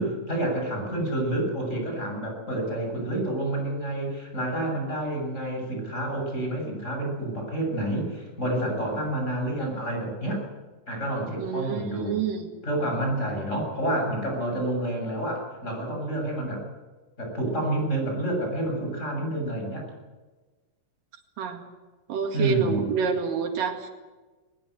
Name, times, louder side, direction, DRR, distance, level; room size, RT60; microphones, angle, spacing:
voice 1, 0.0-10.4 10.9-12.2 12.6-16.6 17.2-19.8 22.3-22.9, right 1 dB, 20° left, 1 dB, 7.6 m, -29 dB
voice 2, 11.4-12.5 21.4-21.6 22.1-23.9, right 6 dB, 90° right, 4 dB, 3.7 m, -27 dB
21.0 x 21.0 x 8.0 m, 1.3 s
omnidirectional pair, 3.8 m